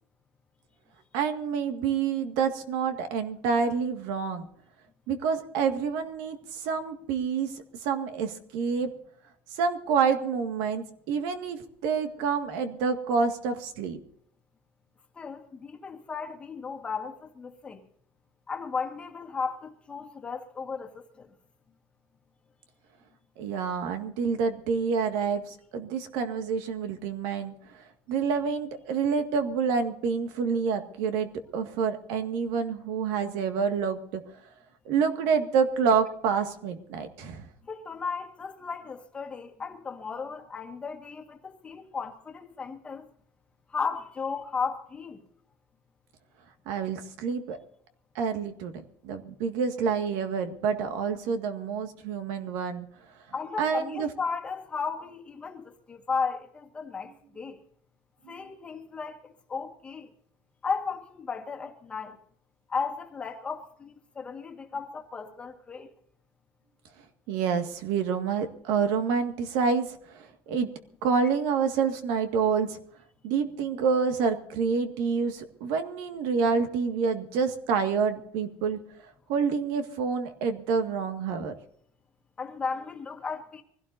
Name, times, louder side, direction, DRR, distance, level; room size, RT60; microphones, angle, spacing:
voice 1, 1.1-4.5 5.1-8.9 9.5-14.0 23.4-34.2 34.9-37.4 46.7-47.6 48.2-48.7 49.0-52.9 53.6-54.1 58.3-58.4 67.3-70.7 71.0-72.8 73.2-78.8 79.3-81.6, right 6 dB, 85° right, 1.9 m, -28 dB
voice 2, 15.2-17.8 18.5-21.3 37.7-43.1 43.7-45.2 53.3-57.6 58.3-60.1 60.6-62.2 62.7-65.9 82.4-83.6, left 5 dB, 20° left, 1.6 m, -35 dB
24.5 x 16.5 x 2.7 m
cardioid pair, 155°, 6 cm